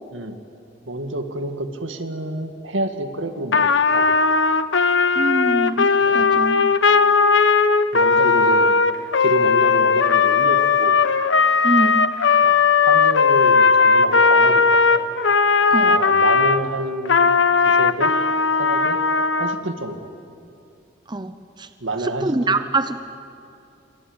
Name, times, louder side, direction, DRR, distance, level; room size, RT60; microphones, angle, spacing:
voice 1, 0.9-4.0 6.0-6.4 7.9-8.7 9.2-11.0 12.4-12.6 12.8-15.1 15.8-17.3 17.6-18.1 18.6-19.0 19.4-20.1 21.8-22.6, right 1 dB, 85° right, 6 dB, 2.2 m, -28 dB
Trumpet, 3.5-16.6 17.1-19.6, left 4 dB, 75° left, 1.0 m, -17 dB
voice 2, 5.1-5.9 6.1-6.7 11.6-12.1 15.7-16.0 21.1-21.3 21.6-21.7 22.0-23.0, right 2 dB, 25° right, 10 dB, 0.8 m, -24 dB
27.5 x 25.5 x 8.2 m, 2.5 s
head